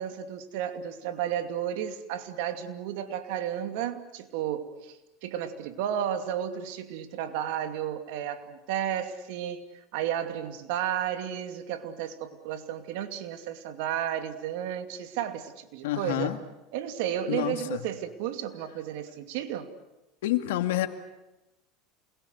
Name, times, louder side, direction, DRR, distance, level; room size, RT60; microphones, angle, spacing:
voice 1, 0.0-5.0 5.2-9.7 9.9-16.3 16.7-19.7, right 10 dB, 75° right, 8 dB, 2.5 m, -33 dB
voice 2, 15.8-16.4 17.3-17.8 20.2-20.9, left 14 dB, 85° left, 8 dB, 2.2 m, -28 dB
28.5 x 22.0 x 8.1 m, 1.0 s
supercardioid pair, 105°, 0 cm